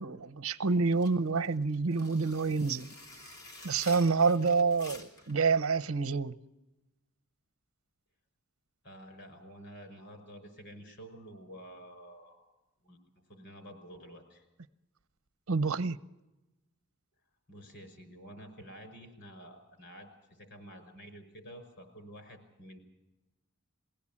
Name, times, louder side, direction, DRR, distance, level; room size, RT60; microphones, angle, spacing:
voice 1, 0.0-2.9 3.6-6.4 15.5-16.0, right 4 dB, 80° right, 0.8 m, -28 dB
sound 1, 0.9-5.4, left 2 dB, 80° left, 3.8 m, -50 dB
voice 2, 8.8-12.4 12.8-13.0 13.3-14.5 17.5-22.8, equal, 55° left, 5.6 m, -50 dB
22.5 x 16.5 x 8.7 m
head